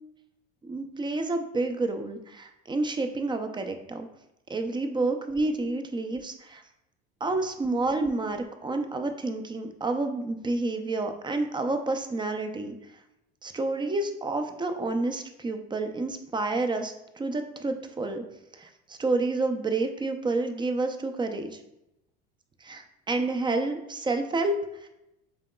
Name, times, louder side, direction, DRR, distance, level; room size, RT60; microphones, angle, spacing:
voice 1, 0.6-4.1 4.5-6.6 7.2-12.7 13.4-18.2 18.5-21.6 22.6-24.5 24.8-24.9, right 2 dB, 15° right, 6 dB, 0.5 m, -29 dB
7.6 x 2.9 x 2.2 m, 0.87 s
hypercardioid pair, 85°, 31 cm